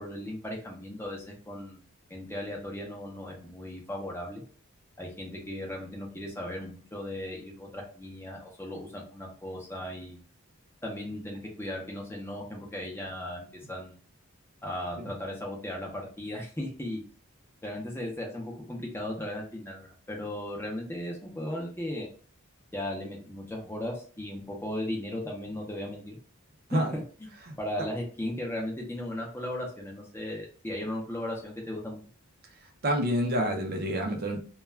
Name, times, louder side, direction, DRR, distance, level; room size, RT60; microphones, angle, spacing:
voice 1, 0.0-1.8 2.1-4.4 5.0-10.2 10.8-13.9 14.6-17.0 17.6-22.1 22.7-26.2 26.7-27.3 27.6-32.0, left 1 dB, 10° left, -1 dB, 0.6 m, -36 dB
voice 2, 32.8-34.4, equal, 45° right, 3 dB, 0.4 m, -27 dB
2.3 x 2.2 x 3.2 m, 0.42 s
head